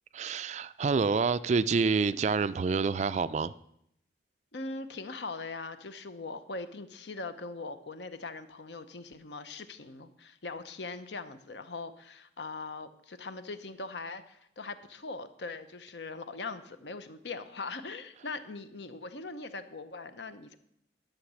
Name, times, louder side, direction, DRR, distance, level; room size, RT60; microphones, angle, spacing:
voice 1, 0.1-3.5, right 4 dB, 40° right, 0.3 m, -27 dB
voice 2, 4.5-20.5, left 3 dB, 75° left, 0.8 m, -41 dB
11.5 x 6.5 x 6.3 m
head